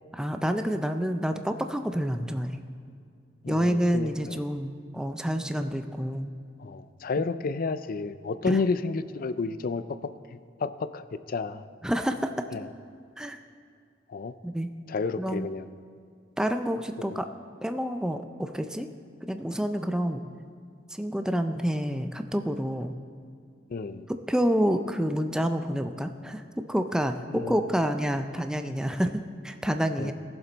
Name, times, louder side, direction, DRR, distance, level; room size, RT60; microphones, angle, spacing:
voice 1, 0.1-2.6 3.5-6.3 8.4-8.6 11.8-12.4 13.2-13.4 14.4-14.7 15.2-15.5 16.4-17.3 17.6-18.9 19.2-20.2 20.9-22.9 24.1-30.1, equal, 5° right, 7 dB, 0.4 m, -28 dB
voice 2, 3.4-4.4 6.6-9.8 10.3-11.6 12.5-12.7 14.1-14.3 14.9-15.7 17.1-17.2 23.7-24.1 27.3-27.6 30.0-30.1, left 4 dB, 50° left, 13 dB, 0.4 m, -31 dB
19.0 x 7.3 x 4.0 m, 2.4 s
head